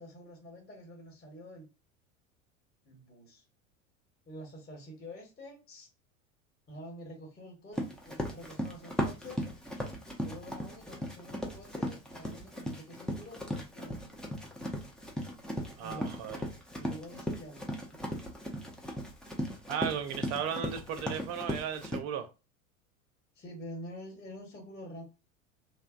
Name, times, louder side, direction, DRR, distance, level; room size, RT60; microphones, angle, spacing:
voice 1, 0.0-1.7 2.9-3.4 4.3-5.9 6.7-9.5 10.2-14.2 15.8-16.2 16.8-18.0 23.3-25.0, equal, 25° left, 1.1 m, -47 dB
Run, 7.7-22.0, equal, ahead, 0.3 m, -37 dB
voice 2, 15.8-16.4 19.7-22.3, right 8 dB, 50° right, 0.6 m, -35 dB
2.6 x 2.1 x 2.5 m
hypercardioid pair, 80°, 41 cm